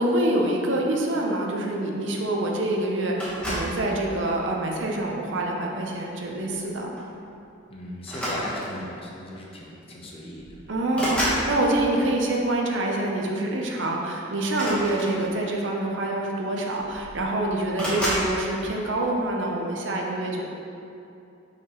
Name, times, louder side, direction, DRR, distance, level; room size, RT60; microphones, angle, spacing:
voice 1, 0.0-6.9 10.7-20.4, right 1 dB, 70° right, -1 dB, 0.8 m, -26 dB
sound 1, 3.2-3.8 4.7-5.0 6.5-6.7 7.0-7.2 8.0-8.9 9.9-10.0 10.3-11.5 14.4-15.5 16.4-16.5 16.8-17.3 17.8-18.3, equal, 5° left, 1.2 m, -30 dB
voice 2, 7.7-10.6, left 1 dB, 30° left, -3 dB, 0.8 m, -37 dB
5.8 x 5.7 x 3.0 m, 2.7 s
head